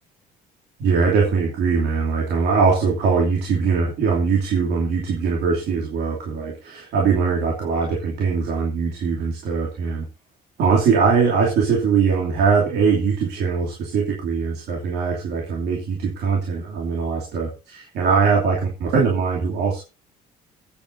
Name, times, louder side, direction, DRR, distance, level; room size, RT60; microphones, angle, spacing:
voice 1, 0.8-10.0 10.6-19.8, right 5 dB, 75° right, -1 dB, 2.9 m, -21 dB
22.5 x 8.7 x 2.7 m, 0.30 s
cardioid pair, 110°, 17 cm